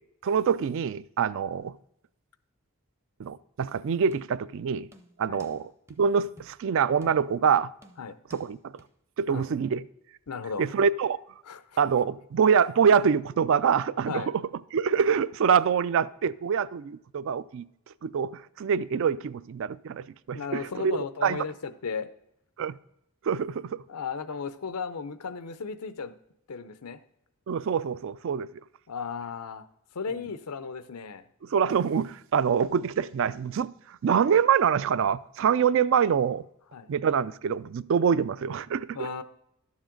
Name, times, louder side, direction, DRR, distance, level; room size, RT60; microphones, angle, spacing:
voice 1, 0.2-1.7 3.2-4.9 5.2-5.7 6.0-7.7 8.3-8.6 9.2-9.8 10.6-11.2 11.8-14.4 14.7-17.6 18.0-20.9 21.2-21.4 22.6-22.8 23.2-23.8 27.5-28.5 31.5-36.4 36.9-39.1, right 7 dB, 60° right, 0.3 m, -25 dB
sound 1, 4.1-4.5 4.9-5.6 5.9-6.0 6.4-6.6 7.0-7.5 7.8-8.5 8.8-8.9, equal, 10° right, 0.6 m, -51 dB
voice 2, 10.3-10.7 11.4-11.8 14.1-14.3 20.3-22.1 23.9-26.1 26.5-27.0 28.9-29.6 29.9-31.2 36.7-36.9 38.9-39.2, left 5 dB, 90° left, 0.6 m, -35 dB
12.0 x 7.3 x 3.8 m
head